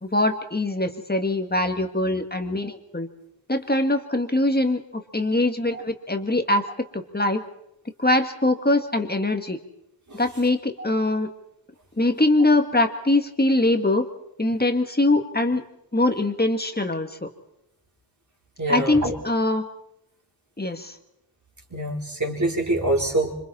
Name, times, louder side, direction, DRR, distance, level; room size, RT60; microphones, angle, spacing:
voice 1, 0.0-3.1 3.5-6.7 6.9-7.4 8.0-9.6 10.1-11.3 12.0-14.1 14.4-15.6 15.9-17.3 18.7-19.7 20.6-21.0, left 2 dB, 20° left, 6 dB, 1.8 m, -22 dB
voice 2, 18.6-19.1 21.7-23.3, right 1 dB, 40° right, -1 dB, 4.2 m, -25 dB
26.0 x 26.0 x 4.3 m, 0.81 s
wide cardioid pair, 90°, 45 cm